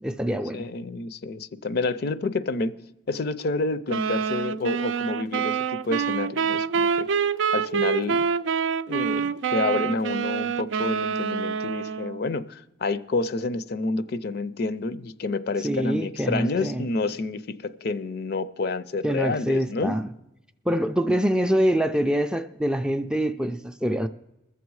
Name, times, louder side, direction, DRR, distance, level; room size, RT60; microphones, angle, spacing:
voice 1, 0.0-0.7 15.6-16.9 19.0-20.1 20.7-24.1, equal, 5° right, 0.3 m, -25 dB
voice 2, 0.5-2.8 3.1-5.6 5.8-7.1 7.5-8.2 8.9-20.0, left 3 dB, 55° left, 0.5 m, -29 dB
sound 1, 3.9-12.3, right 6 dB, 80° right, 0.4 m, -26 dB
21.0 x 7.2 x 4.7 m
head